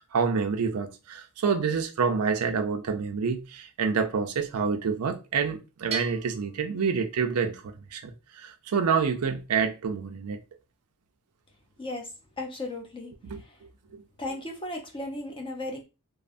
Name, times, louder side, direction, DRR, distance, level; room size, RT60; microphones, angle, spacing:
voice 1, 0.1-10.4 13.2-13.4, right 5 dB, 85° right, 0.5 m, -27 dB
Bell, 5.9-7.6, right 5 dB, 30° right, 0.6 m, -38 dB
voice 2, 12.4-13.6 14.2-15.8, left 2 dB, 25° left, 0.7 m, -36 dB
3.1 x 2.0 x 2.5 m
head